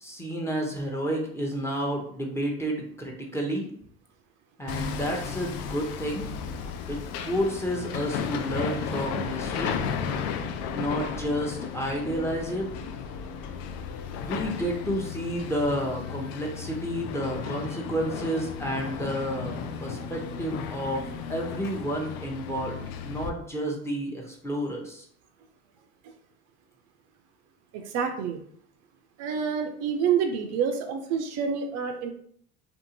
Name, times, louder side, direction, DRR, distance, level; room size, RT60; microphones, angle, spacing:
voice 1, 0.0-3.7 4.6-6.3 6.9-9.8 10.7-12.7 14.2-25.0, equal, 10° left, -1 dB, 0.7 m, -30 dB
Hammer, 4.7-23.3, left 6 dB, 55° left, 0.4 m, -34 dB
voice 2, 27.7-28.4 29.2-32.1, right 7 dB, 55° right, 6 dB, 0.5 m, -28 dB
2.6 x 2.4 x 2.6 m, 0.62 s
hypercardioid pair, 75°, 30 cm